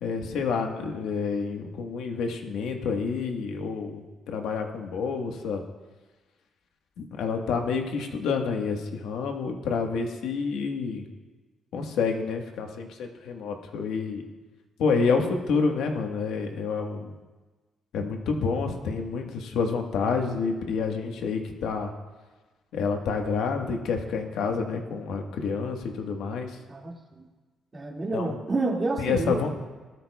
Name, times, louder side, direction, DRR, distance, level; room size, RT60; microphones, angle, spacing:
voice 1, 0.0-5.6 7.0-11.0 11.7-14.2 14.8-17.2 17.9-21.9 22.7-26.6 28.1-28.4 29.0-29.5, left 5 dB, 85° left, 3 dB, 1.3 m, -28 dB
voice 2, 26.7-27.3 27.7-29.4, right 2 dB, 30° right, 0 dB, 2.1 m, -29 dB
18.5 x 13.0 x 2.3 m, 1.3 s
cardioid pair, 90°, 0 cm